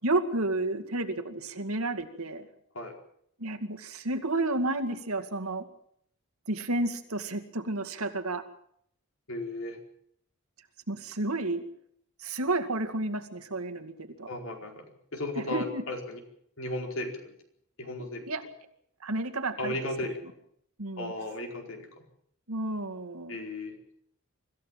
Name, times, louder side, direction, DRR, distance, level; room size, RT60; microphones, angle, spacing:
voice 1, 0.0-2.5 3.4-5.7 6.5-8.4 10.9-11.6 12.2-14.3 15.4-15.8 18.0-18.4 19.0-19.8 20.0-20.2 20.8-21.1 22.5-23.4, right 2 dB, 85° right, 8 dB, 2.3 m, -31 dB
voice 2, 9.3-9.8 14.3-14.9 15.1-16.2 16.6-17.4 17.8-18.3 19.6-20.2 21.0-22.0 23.3-23.8, left 1 dB, 65° left, 3 dB, 4.7 m, -35 dB
25.5 x 15.0 x 7.5 m, 0.69 s
head